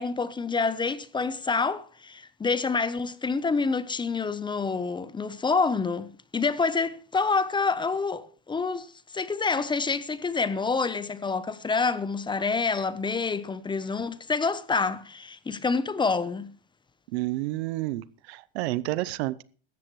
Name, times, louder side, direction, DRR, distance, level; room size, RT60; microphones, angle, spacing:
voice 1, 0.0-8.9 9.1-16.5, left 4 dB, 15° left, 0.8 m, -27 dB
voice 2, 17.1-19.4, right 18 dB, 70° right, 0.8 m, -30 dB
17.0 x 13.0 x 3.1 m
hypercardioid pair, 110°, 34 cm